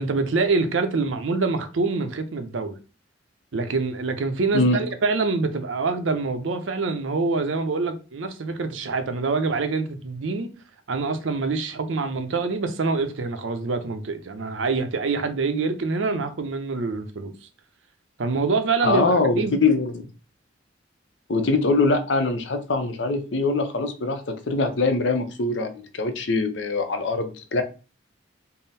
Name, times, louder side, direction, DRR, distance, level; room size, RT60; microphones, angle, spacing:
voice 1, 0.0-2.8 3.5-10.5 10.9-17.3 18.2-19.0 19.4-19.5, right 4 dB, 85° right, 0.6 m, -25 dB
voice 2, 18.8-20.1 21.3-27.6, left 3 dB, 70° left, 0.6 m, -23 dB
3.7 x 2.0 x 4.0 m
head